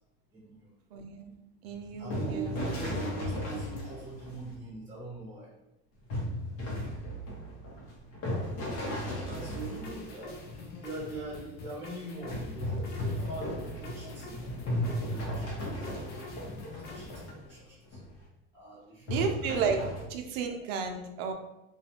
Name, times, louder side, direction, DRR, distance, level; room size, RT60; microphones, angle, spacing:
voice 1, 0.3-0.7 2.0-5.5 9.2-14.4 14.8-18.0 18.5-19.6 20.0-20.1 20.6-20.7, right 3 dB, 10° right, -7 dB, 0.9 m, -43 dB
voice 2, 0.9-1.3 1.6-2.5 2.9-3.0 3.3-3.4 19.1-19.8 20.1-21.3, right 5 dB, 85° right, 4 dB, 0.5 m, -32 dB
sound 1, 1.7-4.5 6.1-10.8 12.2-17.5 17.9-18.1 19.1-20.0, left 1 dB, 50° left, 0.9 m, -36 dB
sound 2, 9.3-17.3, left 3 dB, 35° left, 0.4 m, -45 dB
2.4 x 2.2 x 2.8 m, 0.92 s
supercardioid pair, 120°, 29 cm